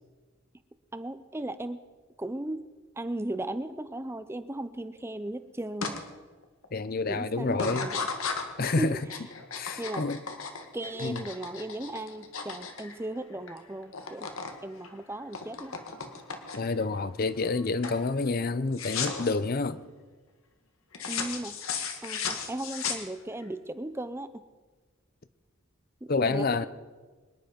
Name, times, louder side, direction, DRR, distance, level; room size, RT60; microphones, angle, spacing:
voice 1, 0.9-1.8 2.2-2.6 3.0-6.0 7.1-8.0 8.6-9.0 9.8-10.1 10.7-14.3 14.6-15.8 21.1-21.6 22.0-24.4 26.0-26.7, right 1 dB, 10° right, 0.5 m, -36 dB
sound 1, 5.8-6.0 6.4-6.9 7.5-13.6 13.8-14.6 14.8-16.8 17.3-17.6 17.8-18.0 18.7-19.3 20.9-23.5, left 5 dB, 85° left, 1.8 m, -35 dB
voice 2, 6.7-7.9 8.6-9.0 9.6-10.2 11.0-11.2 16.6-19.8 26.1-26.7, left 3 dB, 45° left, 0.6 m, -28 dB
25.0 x 10.5 x 5.2 m
head